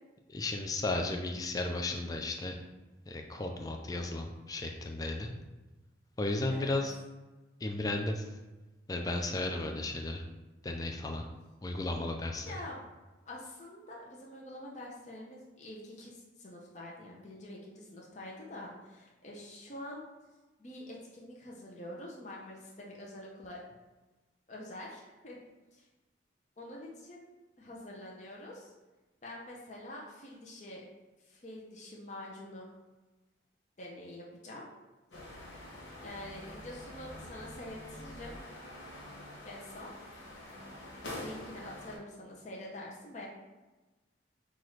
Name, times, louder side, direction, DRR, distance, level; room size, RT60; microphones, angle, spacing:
voice 1, 0.3-2.6 3.1-5.3 6.2-6.9 7.6-8.3 8.9-10.2 10.6-11.2 11.6-12.6, left 2 dB, 20° left, 3 dB, 0.3 m, -34 dB
voice 2, 12.4-12.8 13.3-20.0 20.6-23.6 24.5-25.4 25.7-25.8 26.6-27.3 27.6-28.7 29.2-30.8 31.3-32.7 33.8-34.7 36.0-38.4 39.4-39.9 41.2-43.3, left 1 dB, 40° left, -3 dB, 0.7 m, -46 dB
sound 1, 35.1-42.0, left 1 dB, 75° left, 0.9 m, -46 dB
5.8 x 2.4 x 3.2 m, 1.2 s
head